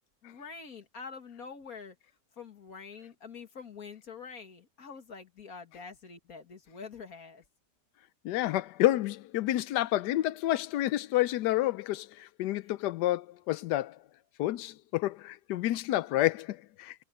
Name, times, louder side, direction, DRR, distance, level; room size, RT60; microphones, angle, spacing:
voice 1, 0.2-2.0 2.4-7.4, left 5 dB, 55° left, 2.2 m, -46 dB
voice 2, 8.2-14.0 14.4-16.9, left 15 dB, 75° left, 1.2 m, -29 dB
omnidirectional pair, 1.8 m